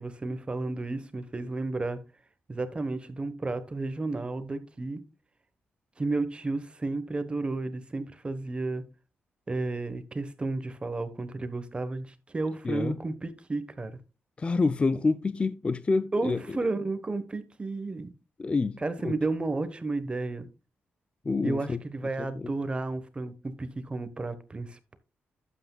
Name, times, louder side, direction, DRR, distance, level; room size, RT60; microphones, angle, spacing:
voice 1, 0.0-2.0 2.5-5.0 6.0-8.8 9.5-13.9 16.1-18.1 18.8-20.5 21.4-25.0, right 3 dB, 25° right, 1.1 m, -32 dB
voice 2, 12.6-13.0 14.4-16.6 18.4-19.1 21.2-21.8 22.2-22.5, left 3 dB, 25° left, 0.4 m, -28 dB
11.5 x 8.2 x 2.3 m
cardioid pair, 100°, 4 cm